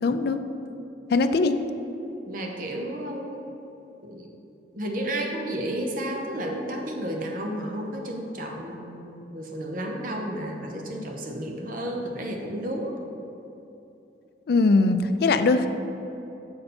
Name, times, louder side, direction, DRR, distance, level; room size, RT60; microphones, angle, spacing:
voice 1, 0.0-0.4 1.1-1.5 14.5-15.7, left 3 dB, 60° left, 9 dB, 0.4 m, -21 dB
voice 2, 2.3-3.5 4.0-4.3 4.7-13.0, right 1 dB, 50° right, 1 dB, 0.7 m, -32 dB
6.7 x 5.5 x 4.2 m, 2.9 s
head